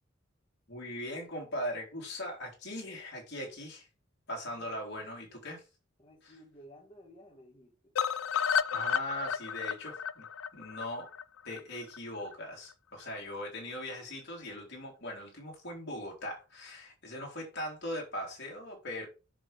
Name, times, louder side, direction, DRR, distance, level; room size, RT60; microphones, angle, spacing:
voice 1, 0.7-3.9 4.3-5.6 6.2-6.3 8.7-10.3 10.5-11.1 11.5-19.1, left 1 dB, 60° left, 3.5 m, -40 dB
voice 2, 6.0-7.9, equal, 25° left, 1.7 m, -55 dB
sound 1, 8.0-12.0 12.3-12.4 12.7-12.8 13.1-13.2, left 8 dB, 85° left, 0.4 m, -32 dB
7.3 x 6.6 x 3.5 m
head